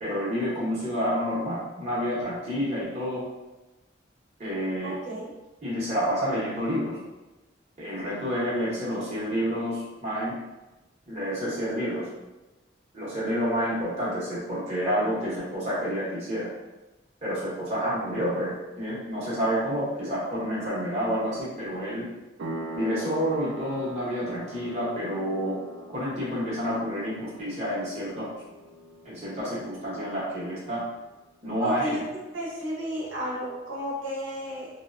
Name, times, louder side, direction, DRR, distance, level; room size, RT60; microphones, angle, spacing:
voice 1, 0.0-3.2 4.4-4.9 5.6-7.0 7.8-10.3 11.1-12.1 12.9-16.5 17.2-22.1 22.7-25.6 25.9-28.3 29.0-30.8 31.4-32.0, equal, 35° right, -8 dB, 0.8 m, -29 dB
voice 2, 4.8-5.2 31.6-32.0 32.3-34.7, equal, 85° right, -5 dB, 0.8 m, -32 dB
sound 1, 22.4-30.7, right 1 dB, 70° right, 0.3 m, -42 dB
2.8 x 2.1 x 2.4 m, 1.1 s
head